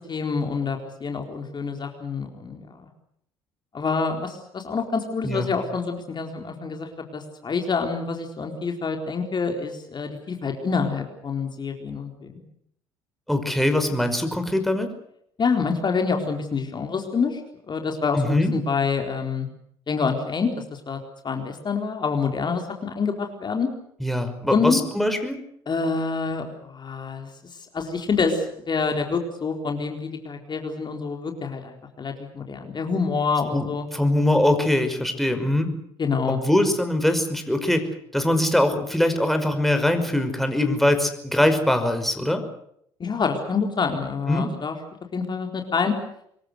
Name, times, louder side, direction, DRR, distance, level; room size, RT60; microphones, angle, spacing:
voice 1, 0.1-2.9 3.7-12.4 15.4-17.4 17.7-19.5 19.9-21.0 21.2-23.7 24.5-24.8 25.7-27.3 27.7-33.9 36.0-36.4 43.0-44.8 45.1-45.9, left 5 dB, 35° left, 4 dB, 4.2 m, -27 dB
voice 2, 13.3-14.9 18.1-18.5 24.0-25.4 33.5-35.7 36.3-37.9 38.1-42.4 44.3-44.5, left 1 dB, ahead, 6 dB, 5.6 m, -22 dB
26.5 x 22.5 x 6.7 m, 0.70 s
hypercardioid pair, 60°, 13 cm